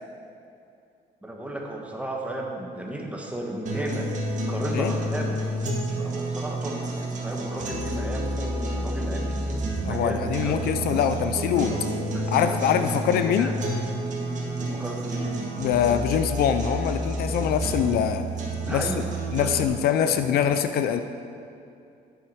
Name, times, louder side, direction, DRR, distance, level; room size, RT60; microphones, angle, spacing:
voice 1, 1.2-4.1 4.5-5.4 6.0-11.0 11.7-11.8 12.1-13.5 14.6-15.3 18.6-19.1 19.4-19.5, right 1 dB, 10° right, 0 dB, 1.3 m, -34 dB
sound 1, 3.7-19.7, right 1 dB, 45° right, 1.9 m, -30 dB
voice 2, 9.9-11.7 12.3-13.5 15.6-18.2 18.7-19.0 19.3-21.0, left 8 dB, 65° left, 9 dB, 0.5 m, -24 dB
8.8 x 7.4 x 4.7 m, 2.5 s
cardioid pair, 110°, 17 cm